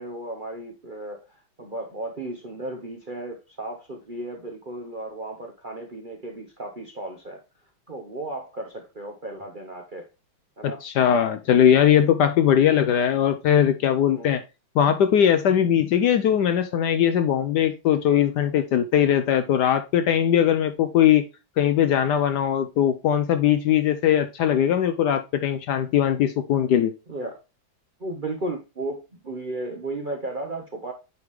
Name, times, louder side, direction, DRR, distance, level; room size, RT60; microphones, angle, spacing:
voice 1, 0.0-7.4 7.9-10.1 10.6-10.8 14.1-14.4 27.1-27.4 28.0-30.9, right 2 dB, 40° right, 2 dB, 0.7 m, -34 dB
voice 2, 10.6-14.4 14.8-21.3 21.6-26.9, left 9 dB, 70° left, 9 dB, 1.0 m, -20 dB
9.2 x 3.6 x 3.0 m, 0.28 s
omnidirectional pair, 2.2 m